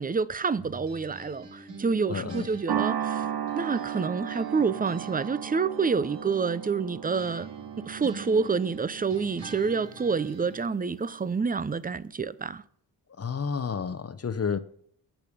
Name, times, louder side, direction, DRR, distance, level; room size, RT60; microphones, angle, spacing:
voice 1, 0.0-3.2 3.5-7.5 7.8-12.6, right 5 dB, 20° right, 0.7 m, -28 dB
sound 1, 0.6-4.0 4.3-10.7, right 3 dB, 80° right, 3.3 m, -47 dB
voice 2, 2.1-2.5 13.2-14.6, left 6 dB, 35° left, 0.9 m, -30 dB
sound 2, 2.7-11.2, right 9 dB, 60° right, 1.1 m, -35 dB
19.5 x 6.7 x 5.3 m
cardioid pair, 80°, 43 cm